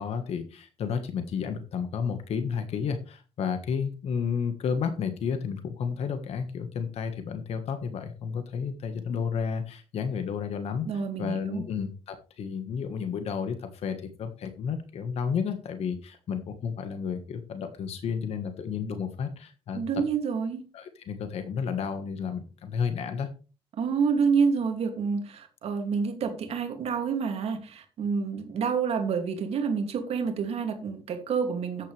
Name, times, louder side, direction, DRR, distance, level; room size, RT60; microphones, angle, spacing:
voice 1, 0.0-10.9 11.2-20.0 20.7-23.3, left 6 dB, 75° left, 8 dB, 1.5 m, -32 dB
voice 2, 10.9-11.6 19.7-20.6 23.8-31.9, right 6 dB, 75° right, 5 dB, 2.5 m, -28 dB
13.5 x 9.3 x 3.4 m, 0.33 s
cardioid pair, 140°, 11 cm